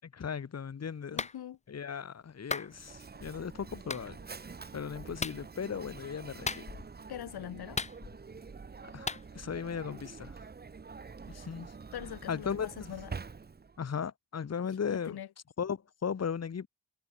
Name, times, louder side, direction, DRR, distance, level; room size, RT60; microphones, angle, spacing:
voice 1, 0.0-1.2 1.7-4.2 4.7-6.6 8.9-10.4 11.3-11.7 12.3-12.9 13.8-15.2 15.6-16.7, left 7 dB, 45° left, 0.8 m, -37 dB
voice 2, 1.1-1.6 7.1-7.8 11.3-11.5 11.9-13.2 14.9-15.3, left 11 dB, 80° left, 0.6 m, -42 dB
Clapping, 1.2-1.4 2.5-2.7 3.9-4.0 5.2-5.4 6.5-6.9 7.8-8.3 9.1-9.2, left 4 dB, 20° left, 0.4 m, -35 dB
Mechanisms, 2.7-13.8, right 5 dB, 25° right, 0.6 m, -47 dB
cardioid pair, 65°, 38 cm